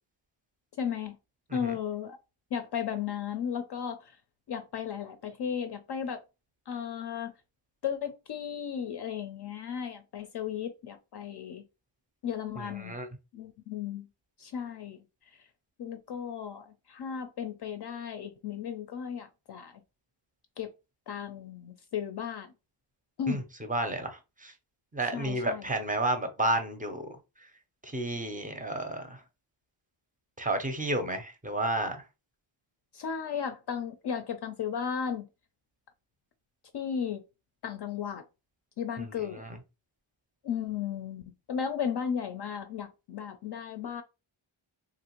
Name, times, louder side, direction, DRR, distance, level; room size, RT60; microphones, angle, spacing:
voice 1, 0.8-1.1 1.5-2.2 2.5-4.1 4.5-6.2 6.7-7.3 7.8-11.6 12.2-12.9 13.3-14.1 14.4-15.0 15.8-19.7 20.6-20.7 21.1-22.5 23.2-23.4 25.1-25.6 32.9-35.3 36.7-37.2 37.6-38.2 38.8-39.4 40.4-41.2 41.5-44.0, left 7 dB, 55° left, 0.5 m, -35 dB
voice 2, 12.6-13.1 23.3-24.5 24.9-27.1 27.8-29.2 30.4-32.0 39.0-39.6, right 2 dB, 15° right, 0.5 m, -32 dB
3.0 x 2.5 x 2.9 m
wide cardioid pair, 120°, 49 cm